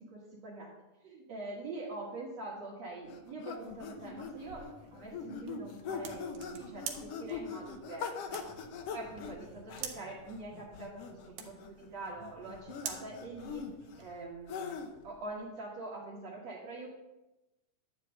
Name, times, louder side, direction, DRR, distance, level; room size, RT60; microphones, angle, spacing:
voice 1, 0.1-0.7 1.0-4.7 4.9-8.5 8.9-13.7 14.0-17.0, right 2 dB, 55° right, -4 dB, 2.9 m, -44 dB
sound 1, 3.1-15.1, left 6 dB, 70° left, 1.6 m, -42 dB
sound 2, 3.7-14.1, right 7 dB, 90° right, 2.8 m, -49 dB
12.0 x 5.1 x 8.1 m, 1.0 s
omnidirectional pair, 3.7 m